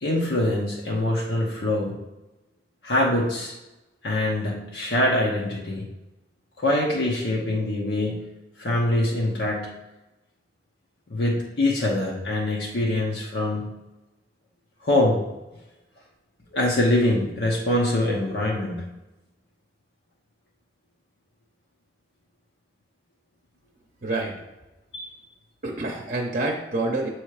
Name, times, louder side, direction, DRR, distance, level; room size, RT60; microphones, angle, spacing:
voice 1, 0.0-1.9 2.8-3.5 4.0-5.8 6.6-8.3 8.6-9.7 11.1-13.7 14.8-15.2 16.5-18.8 24.9-25.1, left 1 dB, 70° left, -3 dB, 1.0 m, -24 dB
voice 2, 24.0-24.4 25.6-27.1, right 2 dB, 45° right, -1 dB, 0.7 m, -27 dB
7.4 x 3.2 x 4.8 m, 1.0 s
head